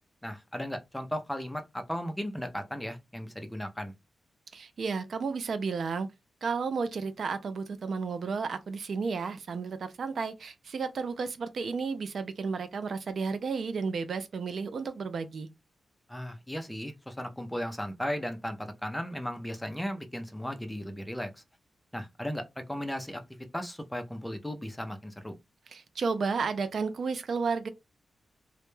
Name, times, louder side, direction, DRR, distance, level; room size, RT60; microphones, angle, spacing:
voice 1, 0.2-3.9 16.1-21.4 21.9-23.2 23.5-25.4, equal, 5° left, 0.4 m, -36 dB
voice 2, 4.5-6.1 6.4-15.5 25.7-27.7, right 5 dB, 65° right, 0.3 m, -32 dB
2.1 x 2.0 x 3.0 m
wide cardioid pair, 100°, 0 cm